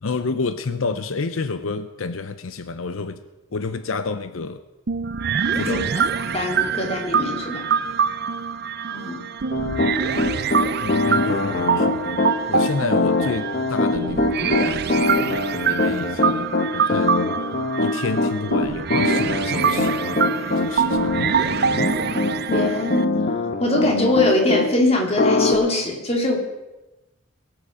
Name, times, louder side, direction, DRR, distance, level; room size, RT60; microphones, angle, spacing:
voice 1, 0.0-3.2 3.5-4.6 5.5-5.8 7.7-7.8 10.8-12.2 12.5-15.0 15.6-17.3 17.8-22.0, left 4 dB, 85° left, 10 dB, 0.7 m, -30 dB
sound 1, 4.9-23.0, right 6 dB, 50° right, 0.5 m, -25 dB
voice 2, 5.5-5.8 6.3-7.7 8.9-9.3 22.5-26.4, left 2 dB, 30° left, 1 dB, 2.4 m, -22 dB
Piano, 9.5-24.7 25.2-25.5, left 2 dB, 45° left, 1.0 m, -22 dB
22.0 x 8.0 x 4.9 m, 1.0 s
head